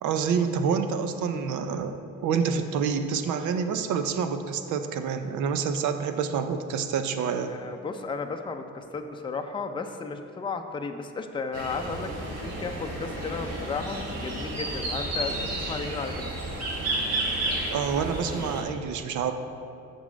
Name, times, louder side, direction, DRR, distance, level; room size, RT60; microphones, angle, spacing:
voice 1, 0.0-7.5 17.7-19.3, right 6 dB, 75° right, 9 dB, 0.6 m, -27 dB
voice 2, 7.5-12.1 12.4-16.3, left 4 dB, 15° left, 5 dB, 0.5 m, -34 dB
sound 1, 11.5-18.6, right 1 dB, 55° right, 1.6 m, -32 dB
7.0 x 5.5 x 5.0 m, 2.5 s
cardioid pair, 90°, 30 cm